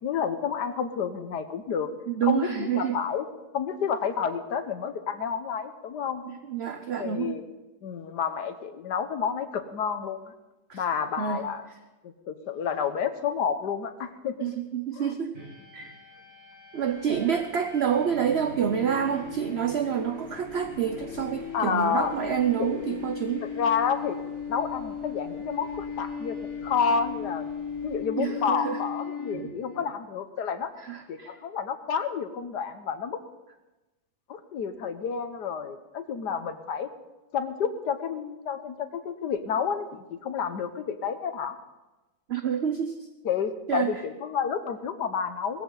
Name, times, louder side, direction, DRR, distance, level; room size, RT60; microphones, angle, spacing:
voice 1, 0.0-1.9 2.2-3.3 3.5-6.2 7.0-7.4 7.8-10.3 10.7-11.6 12.0-14.5 14.9-15.1 21.5-22.1 22.6-23.1 23.6-24.2 24.5-26.4 26.6-27.5 27.8-30.7 31.1-33.2 34.3-36.9 37.3-41.5 43.2-45.6, left 7 dB, 70° left, 9 dB, 1.6 m, -30 dB
voice 2, 2.1-3.0 6.2-7.4 10.7-10.8 11.2-11.4 14.4-15.3 15.7-15.9 16.7-23.5 28.2-28.8 30.8-31.4 42.3-43.1 43.7-44.0, right 8 dB, 55° right, 8 dB, 0.7 m, -28 dB
sound 1, 15.3-29.8, left 6 dB, 40° right, 6.4 m, -38 dB
sound 2, 16.8-28.0, right 1 dB, 80° right, 4.9 m, -53 dB
19.0 x 14.5 x 3.9 m, 1.1 s
omnidirectional pair, 1.9 m